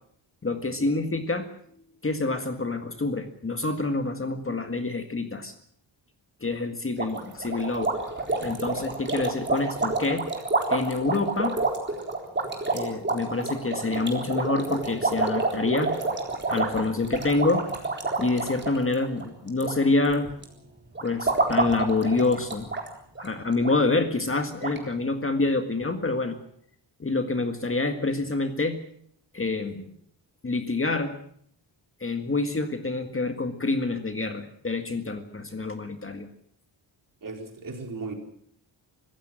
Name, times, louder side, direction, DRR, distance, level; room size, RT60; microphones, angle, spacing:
voice 1, 0.4-1.5 2.0-5.5 6.4-7.9 8.4-10.3 10.7-11.6 12.7-15.9 16.5-17.7 18.2-20.3 21.0-22.7 23.2-26.4 27.0-28.8 29.3-29.9 30.4-31.2 32.0-36.3, left 3 dB, 25° left, 6 dB, 1.8 m, -27 dB
sound 1, 7.0-19.7 20.0-20.4 20.9-22.9 23.1-23.3 23.6-23.7 24.3-24.4 24.6-24.8, right 3 dB, 25° right, 3.9 m, -28 dB
voice 2, 37.2-38.1, right 3 dB, 45° right, 3 dB, 4.4 m, -36 dB
25.0 x 15.5 x 7.7 m, 0.66 s
wide cardioid pair, 165°, 46 cm